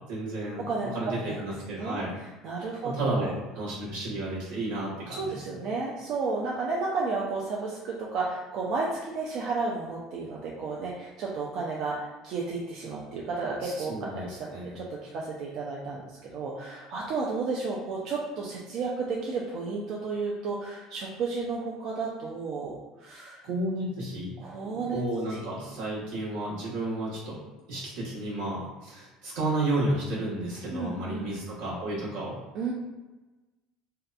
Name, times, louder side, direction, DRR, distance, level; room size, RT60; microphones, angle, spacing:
voice 1, 0.1-0.6 0.9-2.1 2.8-5.4 13.6-14.8 23.4-24.3 24.6-27.4 27.7-32.4, right 2 dB, 85° right, -7 dB, 1.1 m, -32 dB
voice 2, 0.7-1.4 1.7-3.3 5.1-23.4 24.4-25.0 25.3-25.4 30.7-31.3 32.5-32.7, right 4 dB, 55° right, -3 dB, 0.4 m, -32 dB
2.7 x 2.1 x 2.3 m, 1.2 s
supercardioid pair, 125°, 0 cm